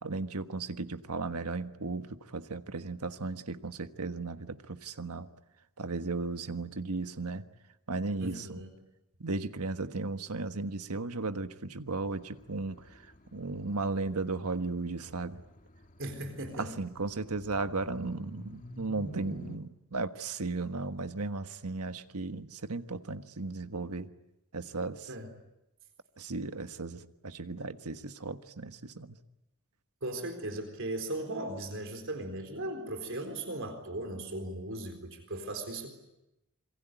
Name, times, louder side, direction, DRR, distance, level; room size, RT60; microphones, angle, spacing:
voice 1, 0.0-5.3 5.8-7.4 7.9-8.6 9.2-13.0 13.3-15.4 16.6-24.1 24.5-25.1 26.2-29.2, right 3 dB, 90° right, 9 dB, 1.4 m, -35 dB
voice 2, 8.2-8.7 16.0-16.7 25.1-25.3 30.0-35.9, right 1 dB, 60° right, 5 dB, 4.0 m, -37 dB
sound 1, 12.0-19.6, left 1 dB, 35° left, 2.2 m, -50 dB
27.0 x 23.0 x 9.2 m, 0.90 s
head